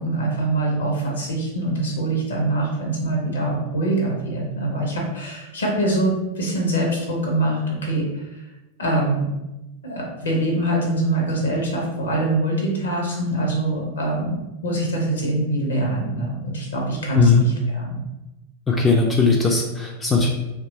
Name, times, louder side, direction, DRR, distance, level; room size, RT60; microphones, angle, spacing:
voice 1, 0.0-8.3 8.8-9.3 9.8-14.4 14.6-18.0, right 2 dB, 65° left, -1 dB, 0.7 m, -24 dB
voice 2, 18.7-20.3, left 4 dB, 15° left, 0 dB, 0.3 m, -18 dB
2.8 x 2.3 x 2.6 m, 0.98 s
figure-of-eight pair, 90°, 0 cm